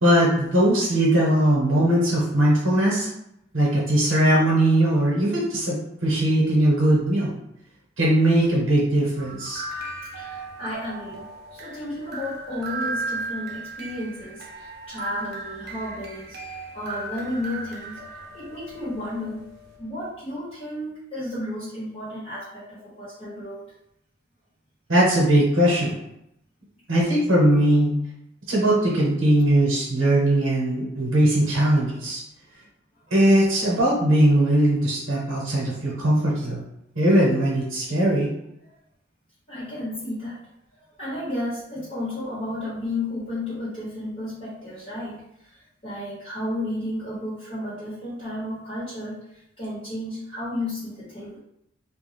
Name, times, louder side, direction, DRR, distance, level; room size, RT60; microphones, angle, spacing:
voice 1, 0.0-3.1 3.5-7.3 8.0-9.6 24.9-25.9 26.9-27.9 28.5-32.2 33.1-36.6 36.9-38.3, right 1 dB, 85° right, -5 dB, 1.0 m, -20 dB
sound 1, 9.2-19.9, right 2 dB, 55° right, 0.5 m, -36 dB
voice 2, 10.1-11.2 11.5-18.0 18.3-19.4 19.8-23.6 32.9-33.0 39.5-40.4 40.9-51.4, left 1 dB, 30° left, -10 dB, 1.1 m, -33 dB
2.3 x 2.3 x 3.4 m, 0.81 s
head